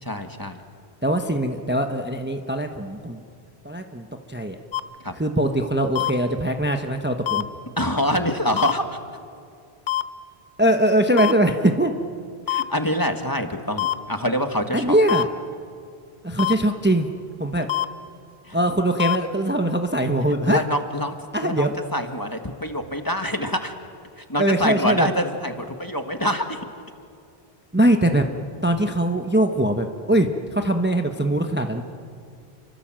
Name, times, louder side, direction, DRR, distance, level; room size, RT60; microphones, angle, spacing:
voice 1, 0.0-0.6 5.0-5.1 7.8-8.9 12.5-14.9 18.5-18.6 20.5-21.2 21.4-23.7 24.2-26.6, equal, 20° left, 6 dB, 1.6 m, -25 dB
voice 2, 1.0-3.2 3.6-4.6 5.2-7.5 10.6-11.9 14.7-15.3 16.2-17.1 17.4-17.7 18.5-20.6 21.3-21.7 24.4-25.1 27.7-28.3 28.6-31.8, right 1 dB, 10° right, 5 dB, 1.1 m, -21 dB
sound 1, 4.7-4.8 6.0-6.1 7.3-7.4 8.6-8.7 9.9-10.0 11.2-11.3 12.5-12.6 13.8-13.9 15.1-15.2 16.4-16.5 17.7-17.9 19.0-19.2, left 13 dB, 50° left, 1.0 m, -23 dB
29.5 x 24.5 x 7.6 m, 2.3 s
omnidirectional pair, 1.0 m